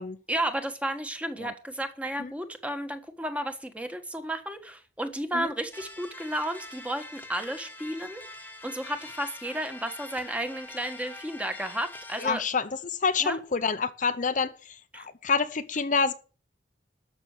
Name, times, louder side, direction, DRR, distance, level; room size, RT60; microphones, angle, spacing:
voice 1, 0.3-8.2 8.6-12.4 13.2-13.4 14.9-15.1, right 1 dB, 10° right, 1.4 m, -33 dB
sound 1, 5.7-12.3, left 2 dB, 10° left, 1.3 m, -44 dB
voice 2, 12.2-16.1, left 5 dB, 45° left, 0.8 m, -28 dB
13.0 x 6.3 x 7.2 m
head